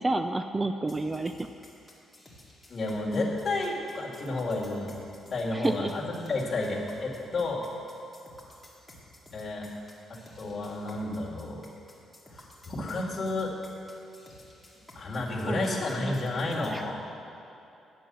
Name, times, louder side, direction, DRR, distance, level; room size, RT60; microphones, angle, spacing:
voice 1, 0.0-1.3 5.5-5.9 15.5-15.8 16.7-16.8, right 2 dB, 20° right, 8 dB, 0.3 m, -29 dB
sound 1, 0.9-16.8, left 1 dB, ahead, 2.1 m, -53 dB
voice 2, 2.7-5.0 5.3-7.6 9.3-9.7 10.1-11.6 12.3-13.5 14.9-17.0, left 2 dB, 35° left, -4 dB, 2.3 m, -31 dB
10.0 x 7.7 x 6.3 m, 2.8 s
cardioid pair, 110°, 0 cm